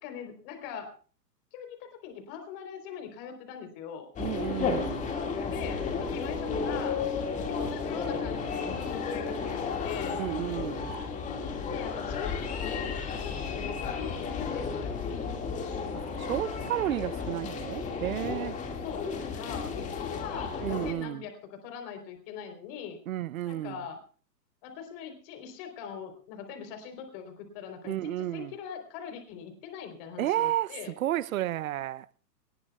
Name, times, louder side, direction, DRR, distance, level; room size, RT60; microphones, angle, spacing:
voice 1, 0.0-0.9 1.5-4.1 5.3-7.0 7.3-10.2 11.7-15.1 18.8-23.0 23.5-24.0 24.6-30.9, left 7 dB, 35° left, 3.9 m, -42 dB
sound 1, 4.2-20.9, left 5 dB, 15° left, 2.1 m, -33 dB
voice 2, 4.2-5.1 10.1-10.9 15.9-18.6 20.6-21.2 23.1-23.8 27.8-28.5 30.2-32.1, right 13 dB, 55° right, 0.8 m, -32 dB
21.5 x 20.0 x 2.4 m
hypercardioid pair, 145°, 49 cm